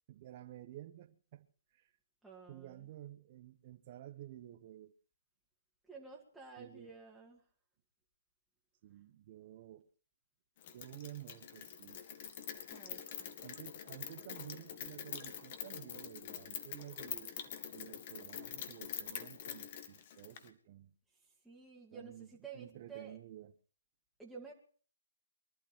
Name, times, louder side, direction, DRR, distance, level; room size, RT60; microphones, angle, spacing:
voice 1, 0.1-1.9 2.5-4.9 6.6-6.9 8.8-9.9 10.7-12.0 13.4-20.9 21.9-23.5, right 13 dB, 35° right, 1.1 m, -52 dB
voice 2, 2.2-2.9 5.9-7.4 12.7-13.4 21.4-23.2 24.2-24.5, right 5 dB, ahead, 2.4 m, -52 dB
Rain, 10.6-20.5, left 9 dB, 40° left, 1.9 m, -45 dB
23.5 x 12.0 x 4.5 m
hypercardioid pair, 150°, 0 cm